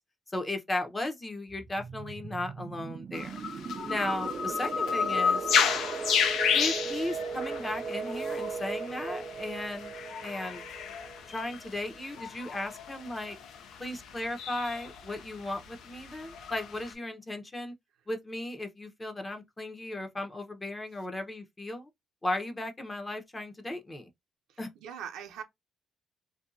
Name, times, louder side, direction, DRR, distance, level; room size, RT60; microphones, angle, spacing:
voice 1, 0.3-3.4 3.9-5.5 6.5-9.9 10.2-10.6 11.3-13.4 13.8-17.7 18.1-21.9 22.2-24.1 24.6-24.7, left 1 dB, 20° left, 0.7 m, -36 dB
sound 1, 1.5-12.0, right 5 dB, 50° right, 0.3 m, -38 dB
sound 2, 3.1-16.9, left 7 dB, 80° left, 0.5 m, -32 dB
voice 2, 24.5-25.4, right 8 dB, 85° right, 0.6 m, -42 dB
2.6 x 2.2 x 2.5 m
cardioid pair, 90°, 0 cm